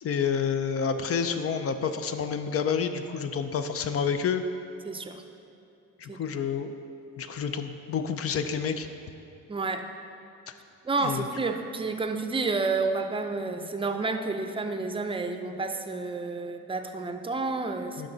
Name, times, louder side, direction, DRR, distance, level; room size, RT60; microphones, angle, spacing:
voice 1, 0.0-4.4 6.0-6.7 7.2-8.9 11.0-11.2 18.0-18.1, left 6 dB, 50° left, 8 dB, 0.6 m, -29 dB
voice 2, 4.8-5.2 6.1-6.2 9.5-9.9 10.8-18.1, right 3 dB, 20° right, 6 dB, 0.6 m, -30 dB
12.0 x 5.0 x 4.0 m, 2.7 s
cardioid pair, 90°, 30 cm